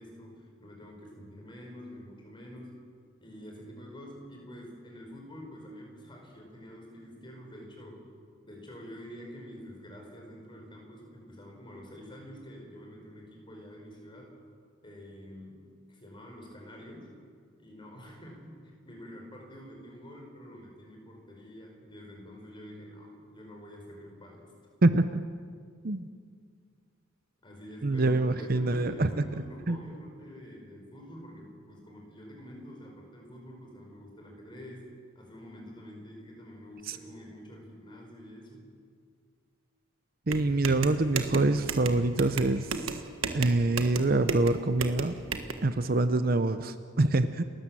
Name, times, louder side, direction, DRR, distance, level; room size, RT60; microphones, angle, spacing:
voice 1, 0.0-2.8 3.2-8.1 8.4-14.3 14.8-17.1 17.6-24.5 27.4-38.7 45.9-46.0, equal, 25° left, 0 dB, 4.8 m, -47 dB
voice 2, 24.8-25.2 25.8-26.1 27.8-29.2 29.7-29.8 40.3-42.7 43.3-45.2 45.6-47.4, right 2 dB, 45° right, 11 dB, 0.7 m, -25 dB
sound 1, 40.3-45.5, right 4 dB, 70° right, 1.6 m, -34 dB
30.0 x 13.5 x 7.6 m, 2.1 s
head